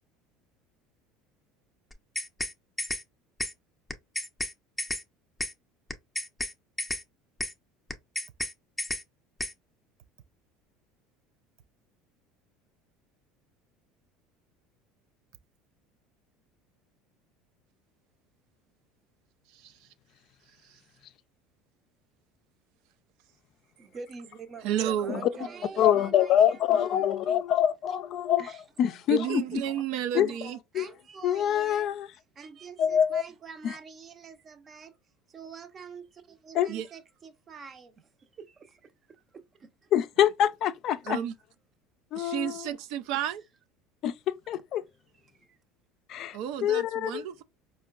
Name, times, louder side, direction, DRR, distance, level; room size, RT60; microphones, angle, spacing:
sound 1, 1.9-2.5 2.8-3.0 3.4-3.5 3.9-4.5 4.8-5.0 5.4-5.5 5.9-6.5 6.8-7.0 7.4-7.5 7.9-8.5 8.8-9.0 9.4-9.5, left 2 dB, 5° left, 0.6 m, -32 dB
voice 1, 19.5-19.9 20.6-20.8 24.6-25.3 29.1-30.6 36.7-36.9 41.0-41.3 42.1-43.4 46.3-47.4, right 10 dB, 70° right, 0.3 m, -32 dB
voice 2, 23.8-27.1 28.4-28.6 30.7-31.9 32.4-34.9 35.3-37.9 38.3-38.9 39.3-39.7 43.1-43.2 45.4-45.6, right 5 dB, 35° right, 0.7 m, -45 dB
voice 3, 25.8-28.4 28.8-29.4 30.1-30.3 30.7-30.9 31.2-32.1 32.8-33.2 33.6-33.7 36.5-36.7 39.9-41.2 42.1-42.6 44.0-44.8 46.1-47.2, left 10 dB, 55° left, 0.3 m, -25 dB
4.3 x 2.2 x 2.3 m
supercardioid pair, 90°, 0 cm